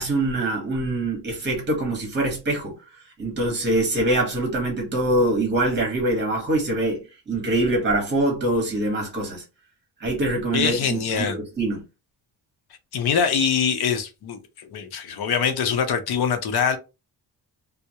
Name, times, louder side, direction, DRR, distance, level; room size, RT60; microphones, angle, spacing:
voice 1, 0.0-2.8 3.2-9.4 10.0-11.8, right 1 dB, 25° right, 1.1 m, -24 dB
voice 2, 10.5-11.4 12.9-16.8, left 7 dB, 65° left, 0.6 m, -23 dB
2.2 x 2.0 x 2.8 m
wide cardioid pair, 170°, 41 cm